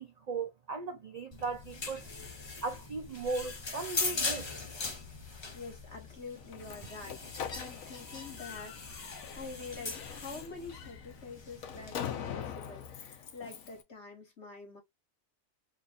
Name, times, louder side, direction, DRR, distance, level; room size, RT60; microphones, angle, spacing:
voice 1, 0.0-2.0 2.6-4.5, right 4 dB, 90° right, 0.3 m, -37 dB
Shower Curtain Slow, 1.3-12.0, left 3 dB, 30° left, 0.6 m, -40 dB
voice 2, 5.5-14.8, left 4 dB, 55° left, 2.1 m, -46 dB
Slam, 6.4-13.8, left 8 dB, 85° left, 1.2 m, -43 dB
3.7 x 2.4 x 3.9 m
omnidirectional pair, 1.4 m